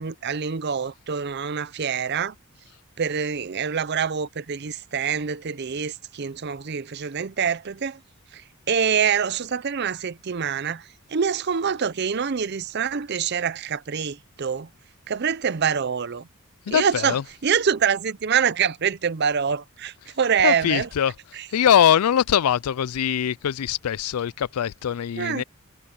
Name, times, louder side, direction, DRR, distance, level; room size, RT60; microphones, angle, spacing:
voice 1, 0.0-2.3 3.0-8.0 8.3-14.7 15.1-16.3 16.7-20.9 21.3-21.5 25.2-25.4, right 7 dB, 50° right, 0.5 m, -25 dB
voice 2, 16.7-17.2 20.4-21.1 21.5-25.4, left 9 dB, 90° left, 0.4 m, -22 dB
head